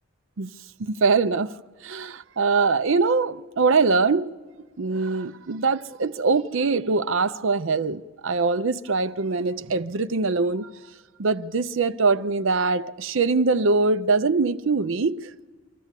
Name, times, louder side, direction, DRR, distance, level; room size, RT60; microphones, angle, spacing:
voice 1, 0.8-1.5 1.8-4.3 4.8-10.7 11.2-15.3, right 4 dB, 60° right, 0.6 m, -23 dB
26.0 x 14.0 x 8.2 m
head